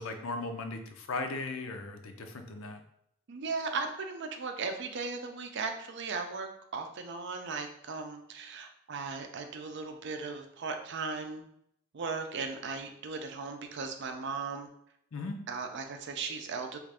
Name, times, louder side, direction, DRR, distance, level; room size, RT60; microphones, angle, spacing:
voice 1, 0.0-2.8 15.1-15.4, left 3 dB, 80° left, 6 dB, 0.5 m, -37 dB
voice 2, 3.3-11.4 11.9-14.7 15.5-16.8, right 4 dB, 60° right, 5 dB, 0.5 m, -37 dB
3.1 x 2.4 x 3.4 m, 0.72 s
head